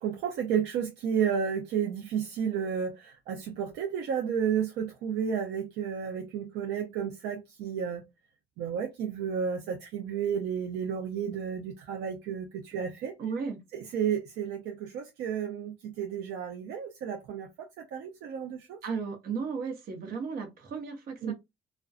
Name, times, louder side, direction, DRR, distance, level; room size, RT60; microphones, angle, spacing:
voice 1, 0.0-8.0 8.6-13.1 13.7-17.5 17.8-18.8 21.2-21.3, right 7 dB, 80° right, 0.4 m, -32 dB
voice 2, 13.2-13.6 18.8-21.3, right 5 dB, 60° right, 0.8 m, -34 dB
2.4 x 2.2 x 2.3 m
cardioid pair, 110°, 17 cm